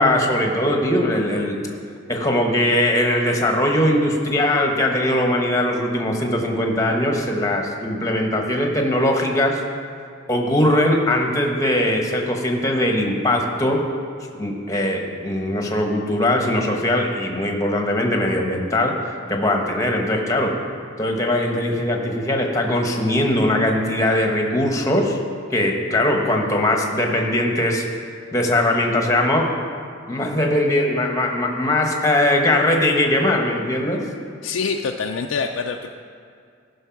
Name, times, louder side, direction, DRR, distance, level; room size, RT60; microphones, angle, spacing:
voice 1, 0.0-1.6 2.1-9.6 10.3-13.8 14.4-18.9 19.3-20.5 21.0-25.2 25.5-27.8 28.3-29.4 30.1-34.0, left 1 dB, 15° left, 2 dB, 1.1 m, -20 dB
voice 2, 34.4-35.9, left 5 dB, 70° left, 3 dB, 0.4 m, -25 dB
14.0 x 5.5 x 5.8 m, 2.3 s
head